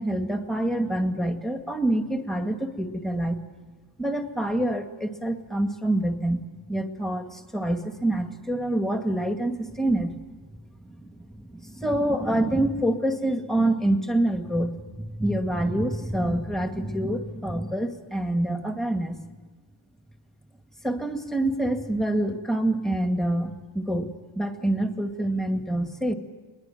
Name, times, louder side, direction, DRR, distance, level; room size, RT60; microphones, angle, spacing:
voice 1, 0.0-3.4 4.0-10.2 10.8-19.2 20.8-24.1 24.4-26.1, right 1 dB, ahead, 6 dB, 2.1 m, -26 dB
22.5 x 20.5 x 9.2 m, 1.3 s
cardioid pair, 80°, 46 cm